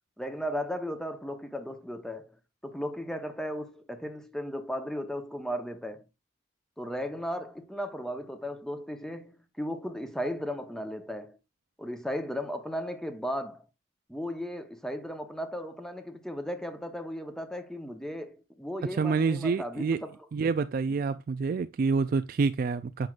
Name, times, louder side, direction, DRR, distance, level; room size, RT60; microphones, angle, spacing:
voice 1, 0.2-2.4 2.6-6.0 6.8-11.4 11.8-13.7 14.1-20.1, equal, 5° left, 0.8 m, -36 dB
voice 2, 19.0-20.0 20.3-23.1, right 4 dB, 45° right, 0.3 m, -27 dB
7.8 x 5.8 x 2.4 m
head